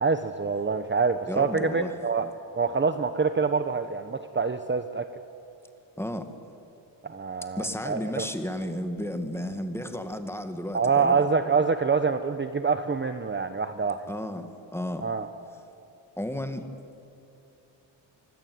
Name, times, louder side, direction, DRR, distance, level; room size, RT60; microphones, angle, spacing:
voice 1, 0.0-2.3 2.6-5.1 7.0-8.3 10.7-14.1 15.0-15.3, right 5 dB, 25° right, 9 dB, 1.0 m, -26 dB
voice 2, 1.3-1.9 6.0-6.3 7.6-11.2 14.1-15.1 16.2-16.7, left 1 dB, 5° left, 7 dB, 2.1 m, -33 dB
24.5 x 24.5 x 9.5 m, 2.8 s
wide cardioid pair, 120°, 44 cm